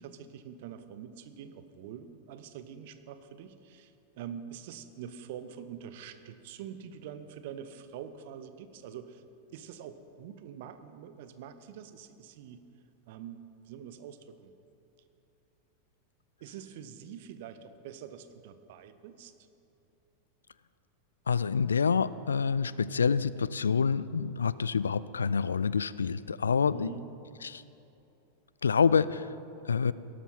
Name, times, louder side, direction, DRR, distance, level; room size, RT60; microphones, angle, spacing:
voice 1, 0.0-9.2 9.5-12.6 13.1-14.5 16.4-19.3 26.7-27.0, right 8 dB, 50° right, 11 dB, 0.8 m, -45 dB
voice 2, 21.3-26.9 27.4-27.6 28.6-29.3 29.7-29.9, left 6 dB, 70° left, 18 dB, 0.3 m, -27 dB
18.0 x 12.5 x 4.4 m, 2.9 s
figure-of-eight pair, 90°, 0 cm